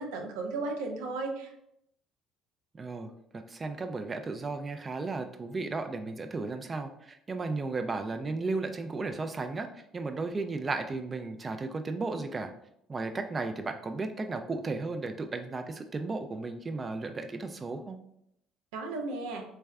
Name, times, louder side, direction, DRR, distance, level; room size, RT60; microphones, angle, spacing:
voice 1, 0.0-1.5 18.7-19.4, right 3 dB, 85° right, 3 dB, 0.5 m, -35 dB
voice 2, 2.7-12.5 12.9-18.0, right 3 dB, 30° right, 6 dB, 0.3 m, -34 dB
3.3 x 3.2 x 2.3 m, 0.76 s
supercardioid pair, 75°, 0 cm